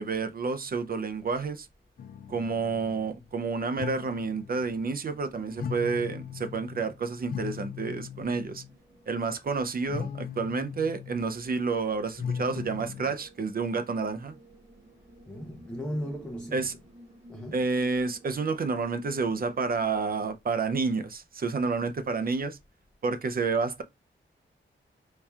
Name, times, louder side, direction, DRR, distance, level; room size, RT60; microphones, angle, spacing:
voice 1, 0.0-1.7 2.3-8.6 9.1-14.3 16.5-16.7 17.5-22.6 23.0-23.8, right 4 dB, 45° right, 0.5 m, -29 dB
sound 1, 1.8-19.9, equal, 30° right, 1.9 m, -56 dB
sound 2, 2.0-3.5 3.8-5.1 5.4-8.7 9.9-11.3 12.2-13.2, left 7 dB, 50° left, 0.4 m, -39 dB
voice 2, 15.3-17.0 17.3-17.7, equal, 5° left, 0.7 m, -37 dB
4.5 x 2.7 x 2.3 m
wide cardioid pair, 90°, 20 cm